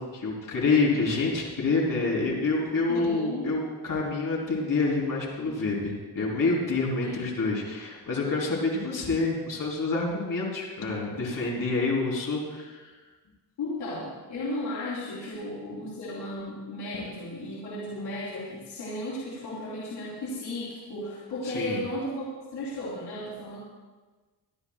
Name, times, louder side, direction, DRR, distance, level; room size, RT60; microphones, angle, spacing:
voice 1, 0.0-12.9 21.4-21.8, left 3 dB, 55° left, -3 dB, 4.2 m, -27 dB
voice 2, 2.9-3.5 7.0-7.2 13.6-23.6, left 1 dB, 75° left, -9 dB, 3.9 m, -35 dB
26.5 x 11.0 x 2.5 m, 1.3 s
cardioid pair, 115°, 40 cm